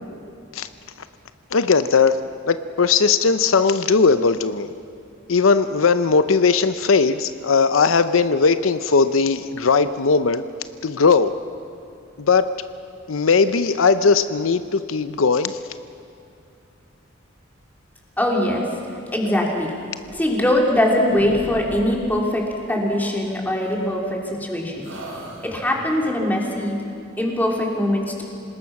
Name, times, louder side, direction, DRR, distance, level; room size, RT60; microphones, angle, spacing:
voice 1, 1.5-2.2 2.5-4.7 5.3-10.4 10.8-11.3 12.2-12.5 13.1-15.6, left 5 dB, 80° left, 11 dB, 0.7 m, -18 dB
voice 2, 18.2-18.7 19.1-19.7 20.1-24.9 25.4-26.8 27.2-28.2, left 1 dB, 10° left, -1 dB, 3.2 m, -22 dB
sound 1, 20.0-20.8 21.1-22.3 23.6-24.4 24.8-26.1, right 1 dB, 85° right, 5.4 m, -40 dB
26.5 x 20.0 x 6.0 m, 2.6 s
head